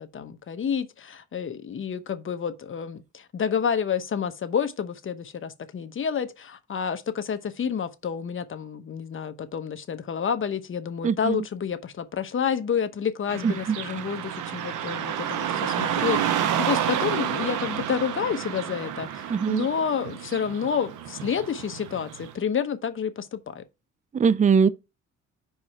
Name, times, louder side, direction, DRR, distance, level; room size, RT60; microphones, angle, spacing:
voice 1, 0.0-23.6, left 7 dB, 40° left, 1.0 m, -29 dB
voice 2, 11.0-11.4 13.4-13.8 14.8-14.9 19.3-19.7 24.1-24.7, right 6 dB, 25° right, 0.5 m, -22 dB
Car passing by / Traffic noise roadway noise, 13.3-22.3, right 9 dB, 80° right, 0.9 m, -30 dB
5.5 x 4.8 x 4.7 m
cardioid pair, 90°, 30 cm